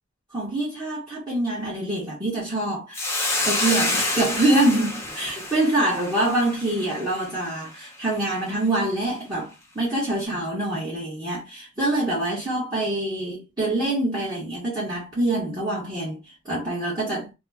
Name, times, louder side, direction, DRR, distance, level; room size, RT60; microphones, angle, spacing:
voice 1, 0.3-3.1 3.5-16.2 16.4-17.3, right 1 dB, 20° right, 1.3 m, -25 dB
Hiss, 2.9-7.5, left 2 dB, 10° left, 0.7 m, -28 dB
2.9 x 2.4 x 3.4 m
head